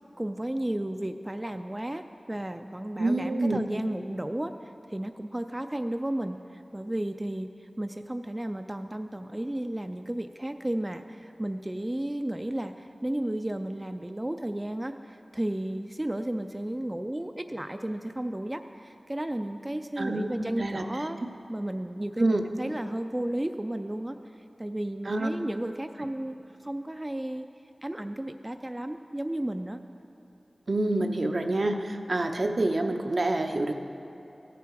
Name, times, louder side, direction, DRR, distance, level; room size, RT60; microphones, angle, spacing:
voice 1, 0.2-21.2 21.5-27.5 27.8-29.8, right 1 dB, 20° right, 7 dB, 0.3 m, -33 dB
voice 2, 3.0-3.6 20.0-20.8 22.2-22.4 25.1-25.3 30.7-33.7, right 2 dB, 65° right, 5 dB, 0.7 m, -27 dB
16.0 x 6.8 x 4.7 m, 2.9 s
wide cardioid pair, 60°, 0 cm